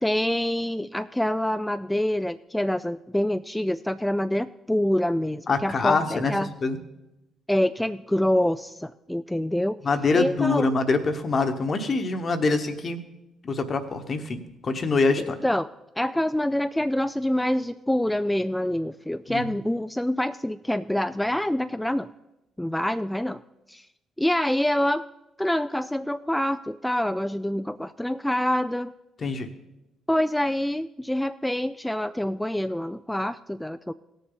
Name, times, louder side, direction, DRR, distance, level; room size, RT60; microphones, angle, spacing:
voice 1, 0.0-6.5 7.5-9.8 10.1-10.7 15.2-15.7 16.0-22.1 22.6-23.4 23.7-23.9 24.2-25.1 25.4-28.9 30.1-33.9, left 1 dB, 5° left, 11 dB, 0.3 m, -26 dB
voice 2, 5.5-6.3 6.6-6.8 9.8-13.0 13.4-15.4 19.3-19.4 29.2-29.5, left 3 dB, 45° left, 8 dB, 1.2 m, -24 dB
17.0 x 6.9 x 4.0 m, 0.95 s
hypercardioid pair, 55°, 0 cm